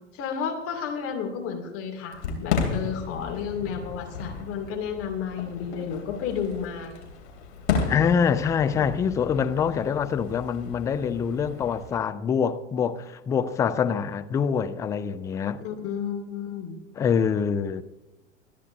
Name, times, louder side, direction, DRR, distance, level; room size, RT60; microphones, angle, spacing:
voice 1, 0.0-7.1 9.8-10.0 15.6-16.8, left 7 dB, 35° left, 2.6 m, -32 dB
Fireworks, 2.1-12.0, left 5 dB, 55° left, 3.1 m, -33 dB
voice 2, 7.9-15.6 17.0-17.8, left 7 dB, 10° left, 0.3 m, -25 dB
26.0 x 10.0 x 2.7 m
figure-of-eight pair, 85°, 39 cm